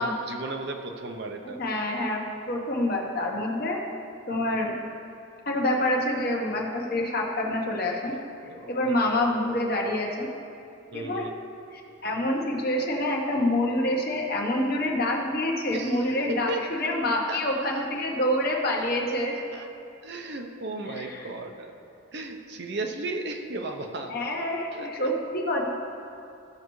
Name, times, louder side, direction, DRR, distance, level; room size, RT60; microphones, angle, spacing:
voice 1, 0.0-1.6 8.4-8.9 10.9-11.4 15.7-16.7 17.3-17.9 18.8-19.1 19.5-19.7 20.0-21.7 22.1-24.1 24.7-25.1, right 2 dB, 55° right, 4 dB, 0.7 m, -35 dB
voice 2, 1.6-3.8 4.3-4.7 5.5-8.2 8.7-10.3 10.9-11.3 12.0-19.3 20.9-21.3 24.1-25.7, left 1 dB, 50° left, 0 dB, 1.1 m, -27 dB
15.0 x 6.5 x 3.1 m, 2.6 s
head